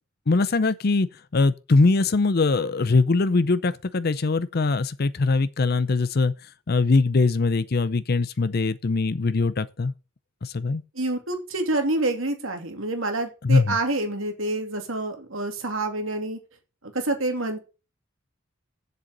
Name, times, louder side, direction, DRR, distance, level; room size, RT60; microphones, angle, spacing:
voice 1, 0.3-1.1 1.3-6.3 6.7-9.9 10.4-10.8 13.4-13.8, left 3 dB, 50° left, 0.6 m, -22 dB
voice 2, 10.9-16.4 16.9-17.6, right 2 dB, 85° right, 2.6 m, -27 dB
7.9 x 6.9 x 7.7 m
head